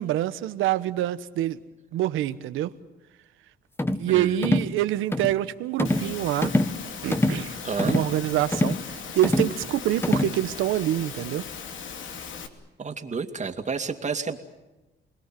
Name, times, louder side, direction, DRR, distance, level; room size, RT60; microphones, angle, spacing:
voice 1, 0.0-1.6 1.9-2.7 4.0-6.5 7.0-11.5, right 13 dB, 90° right, 12 dB, 1.2 m, -26 dB
sound 1, 3.8-4.1 4.4-4.7 5.1-5.4 5.8-6.1 6.4-6.8 7.1-7.4 7.8-8.1 8.5-8.8 9.2-9.6 10.0-10.4, left 1 dB, 10° left, 1.4 m, -24 dB
Engine / Mechanisms, 5.8-12.5, left 6 dB, 75° left, 2.8 m, -38 dB
voice 2, 7.6-8.0 12.8-14.4, right 5 dB, 35° right, 6 dB, 2.5 m, -30 dB
29.5 x 20.5 x 7.7 m, 1.1 s
cardioid pair, 90°, 20 cm